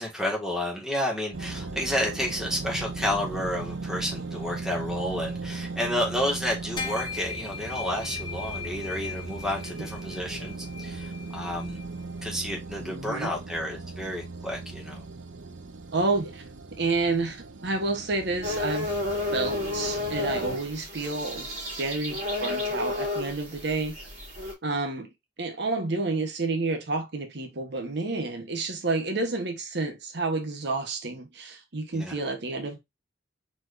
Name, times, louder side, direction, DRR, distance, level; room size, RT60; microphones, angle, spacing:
voice 1, 0.0-11.8 12.2-15.0 31.9-32.1, left 1 dB, 5° right, 1.8 m, -31 dB
sound 1, 1.3-20.6, right 3 dB, 85° right, 0.8 m, -38 dB
sound 2, 6.8-12.4, left 5 dB, 25° left, 1.3 m, -39 dB
voice 2, 12.8-13.3 15.9-16.4 16.7-19.0 19.3-21.5 21.8-23.9 24.6-25.1 25.4-32.8, right 3 dB, 65° right, 1.1 m, -29 dB
sound 3, 18.4-24.5, left 2 dB, 40° right, 2.9 m, -32 dB
4.6 x 4.3 x 2.6 m
head